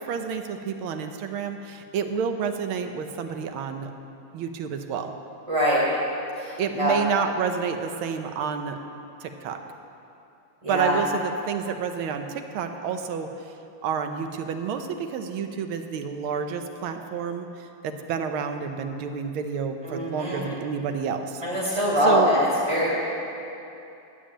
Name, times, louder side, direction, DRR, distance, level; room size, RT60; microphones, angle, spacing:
voice 1, 0.0-3.9 4.3-5.1 6.6-8.8 9.2-9.6 10.7-13.3 13.8-22.3, right 6 dB, 85° right, 6 dB, 1.7 m, -29 dB
voice 2, 5.5-5.8 6.4-6.9 10.6-11.0 19.8-20.5 21.4-22.9, equal, 15° right, -6 dB, 3.5 m, -23 dB
12.0 x 7.2 x 8.7 m, 2.8 s
omnidirectional pair, 2.3 m